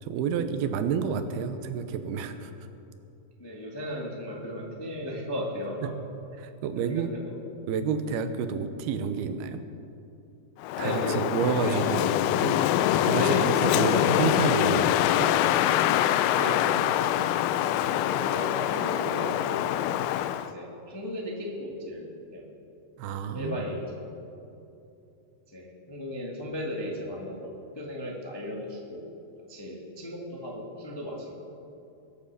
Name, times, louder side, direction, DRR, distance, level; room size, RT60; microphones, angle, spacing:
voice 1, 0.0-2.5 6.4-7.1 7.7-9.6 10.8-12.0 12.4-12.6 13.0-15.3 23.0-23.6, right 6 dB, 85° right, 9 dB, 2.8 m, -29 dB
voice 2, 3.4-5.9 6.7-7.3 10.8-11.2 11.6-12.0 13.1-14.1 16.3-16.8 17.9-20.0 20.5-22.4 23.3-24.0 25.5-29.0 29.5-31.3, left 1 dB, 35° left, -2 dB, 0.4 m, -35 dB
Wind, 10.6-20.5, left 12 dB, 85° left, 2.4 m, -24 dB
21.5 x 7.9 x 6.8 m, 2.8 s
omnidirectional pair, 4.4 m